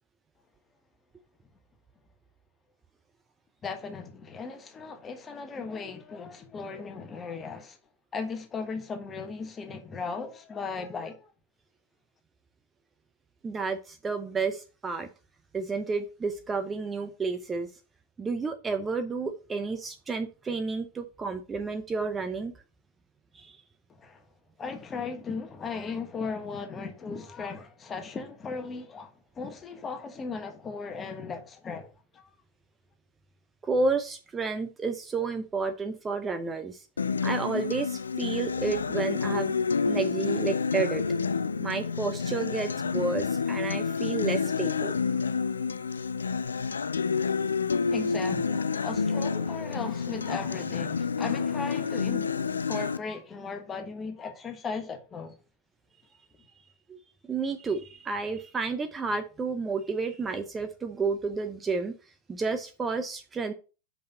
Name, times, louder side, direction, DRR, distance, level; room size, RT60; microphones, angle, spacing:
voice 1, 3.6-7.8 8.1-11.3 24.0-24.2 24.6-32.3 47.9-52.4 52.7-55.4, left 4 dB, 20° left, 1.3 m, -37 dB
voice 2, 13.4-15.1 15.5-17.7 18.2-22.5 23.3-23.6 33.6-36.9 37.2-39.5 39.8-41.0 41.6-45.0 56.9-57.0 57.3-63.5, right 4 dB, 15° right, 0.6 m, -31 dB
Acoustic guitar, 37.0-53.0, left 5 dB, 75° left, 0.4 m, -29 dB
5.5 x 5.5 x 5.3 m
figure-of-eight pair, 90°, 0 cm